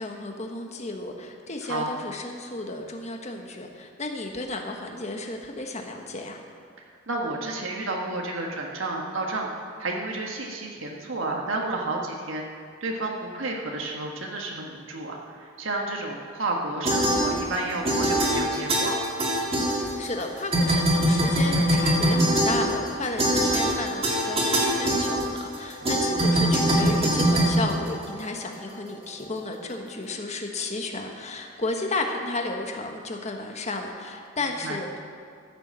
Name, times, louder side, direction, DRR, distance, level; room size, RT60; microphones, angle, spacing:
voice 1, 0.0-6.4 19.6-35.0, left 2 dB, 35° left, 3 dB, 1.3 m, -33 dB
voice 2, 1.6-1.9 6.8-9.5 9.8-12.4 12.8-19.0 25.8-26.4 34.6-34.8, right 2 dB, 85° right, 0 dB, 1.5 m, -31 dB
sound 1, 16.8-17.6 17.8-20.2 20.5-28.4, right 1 dB, 30° right, 2.1 m, -23 dB
14.0 x 7.0 x 7.5 m, 2.2 s
head